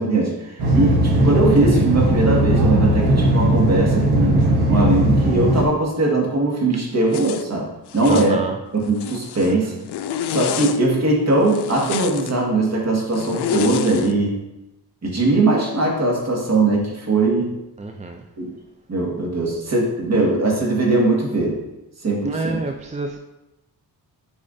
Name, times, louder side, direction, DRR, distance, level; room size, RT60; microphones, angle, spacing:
voice 1, 0.0-7.7 7.9-8.4 8.7-9.7 10.3-14.4 15.0-17.5 18.4-18.5 18.9-21.6 22.0-22.6, right 2 dB, 40° right, -2 dB, 1.9 m, -20 dB
sound 1, 0.6-5.6, right 1 dB, 75° right, 1.2 m, -18 dB
Zipper (clothing), 7.1-7.4 7.9-8.3 8.8-9.5 9.9-10.8 11.5-12.3 13.1-14.1, left 9 dB, 85° left, 0.5 m, -28 dB
voice 2, 8.1-8.6 9.5-9.8 17.8-18.2 22.3-23.2, right 3 dB, 20° right, 4 dB, 0.4 m, -28 dB
8.6 x 4.9 x 2.7 m, 0.95 s
cardioid pair, 95°, 39 cm